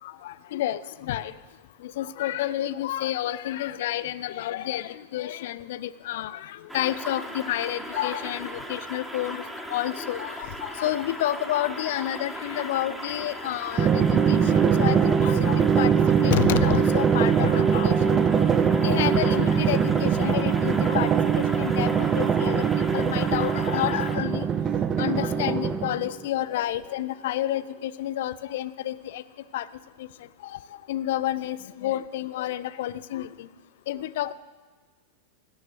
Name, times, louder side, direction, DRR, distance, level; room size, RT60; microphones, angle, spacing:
voice 1, 0.0-1.3 1.8-9.4 9.7-18.2 18.5-22.7 22.9-24.5 25.0-29.2 29.5-29.7 30.0-30.1 30.4-30.6 30.9-33.5 33.9-34.3, left 13 dB, 55° left, 16 dB, 0.3 m, -30 dB
sound 1, 6.7-24.2, equal, ahead, 0.9 m, -37 dB
Drum, 13.8-26.1, right 7 dB, 25° right, 0.5 m, -22 dB
16.0 x 9.3 x 3.2 m, 1.5 s
figure-of-eight pair, 90°, 0 cm